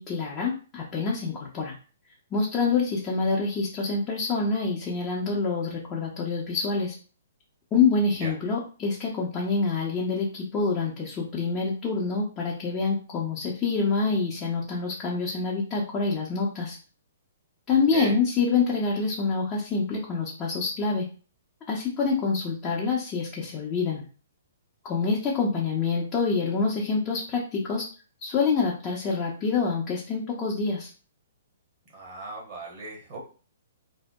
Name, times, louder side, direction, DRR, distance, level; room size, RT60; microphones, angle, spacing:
voice 1, 0.0-1.7 2.3-6.9 7.7-16.8 17.7-21.1 21.7-24.0 24.8-27.9 28.2-30.9, left 4 dB, 20° left, -4 dB, 0.6 m, -26 dB
voice 2, 31.9-33.2, right 3 dB, 35° right, -2 dB, 1.0 m, -37 dB
2.6 x 2.1 x 2.2 m, 0.37 s
figure-of-eight pair, 125°, 0 cm